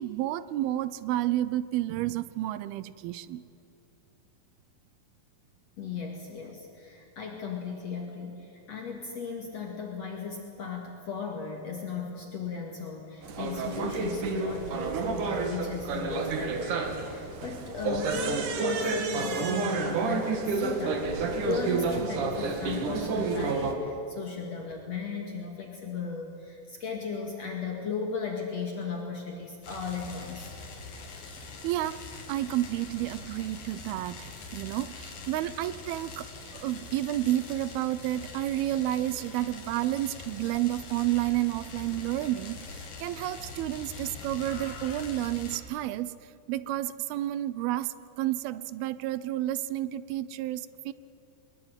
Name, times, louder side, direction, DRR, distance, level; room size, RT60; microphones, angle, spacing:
voice 1, 0.0-3.4 31.6-32.0 32.3-46.2 46.5-50.9, right 14 dB, 90° right, 16 dB, 2.6 m, -30 dB
voice 2, 5.8-30.5, left 5 dB, 50° left, 1 dB, 3.0 m, -36 dB
sound 1, 13.2-23.7, right 4 dB, 60° right, 3.1 m, -30 dB
sound 2, 29.6-45.6, left 3 dB, 70° left, 4.2 m, -43 dB
23.0 x 21.0 x 9.0 m, 2.6 s
omnidirectional pair, 4.3 m